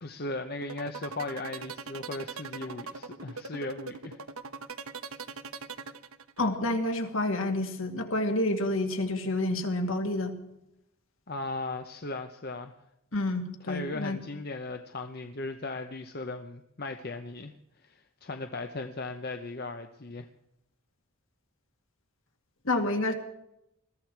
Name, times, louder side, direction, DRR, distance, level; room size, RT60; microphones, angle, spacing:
voice 1, 0.0-4.2 11.3-12.7 13.7-17.5 17.8-20.3, left 2 dB, 45° left, 6 dB, 0.8 m, -37 dB
sound 1, 0.6-6.6, right 4 dB, 80° right, 1.1 m, -40 dB
voice 2, 6.4-10.3 13.1-14.2 22.6-23.1, left 1 dB, 65° left, 4 dB, 2.3 m, -29 dB
21.5 x 14.5 x 4.6 m, 0.82 s
head